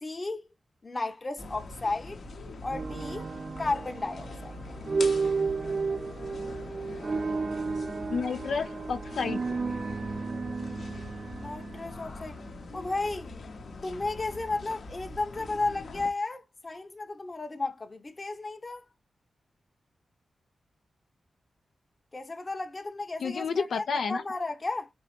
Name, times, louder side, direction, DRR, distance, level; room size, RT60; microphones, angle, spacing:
voice 1, 0.0-0.5 0.8-2.2 2.6-3.3 3.6-4.5 11.3-12.4 12.7-13.3 13.8-18.9 22.1-24.9, left 3 dB, 30° left, 0.9 m, -33 dB
sound 1, 1.4-16.1, left 3 dB, 65° left, 1.0 m, -43 dB
sound 2, 2.7-12.7, right 4 dB, 45° right, 0.4 m, -33 dB
voice 2, 8.1-9.4 23.2-24.2, left 5 dB, 80° left, 0.7 m, -30 dB
4.5 x 3.0 x 3.0 m
wide cardioid pair, 100°, 0 cm